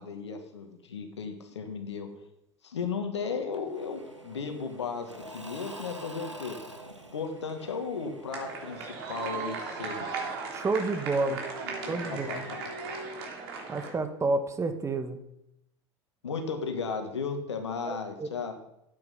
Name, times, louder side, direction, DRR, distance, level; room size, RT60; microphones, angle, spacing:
voice 1, 0.0-2.1 2.6-6.6 7.1-10.1 11.6-12.7 16.2-18.6, left 5 dB, 75° left, 6 dB, 1.9 m, -35 dB
Engine / Mechanisms / Drill, 3.5-10.2, right 1 dB, 90° right, 1.4 m, -47 dB
sound 1, 8.3-13.9, right 4 dB, 60° right, 3.1 m, -37 dB
voice 2, 10.5-11.4 11.9-12.4 13.7-15.2 17.8-18.3, right 3 dB, 20° right, 9 dB, 1.5 m, -29 dB
12.5 x 9.0 x 5.8 m, 0.82 s
figure-of-eight pair, 75°, 15 cm